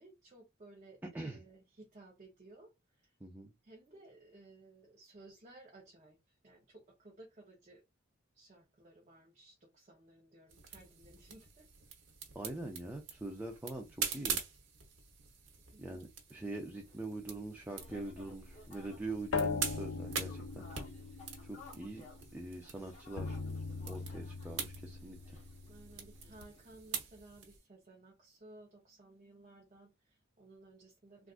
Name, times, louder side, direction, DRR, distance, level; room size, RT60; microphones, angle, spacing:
voice 1, 0.0-3.1 3.6-7.8 8.3-11.7 15.7-16.0 25.7-31.3, right 2 dB, 35° right, 0.8 m, -58 dB
voice 2, 3.2-3.5 12.3-14.4 15.8-20.7 21.4-22.1 22.3-23.4 23.9-25.4, right 2 dB, 10° right, 0.4 m, -43 dB
sound 1, 10.5-27.6, right 6 dB, 90° right, 1.0 m, -45 dB
sound 2, 16.6-27.1, left 3 dB, 35° left, 1.2 m, -59 dB
sound 3, 17.8-22.6 23.2-26.4, left 4 dB, 85° left, 0.5 m, -41 dB
3.5 x 2.4 x 2.4 m
head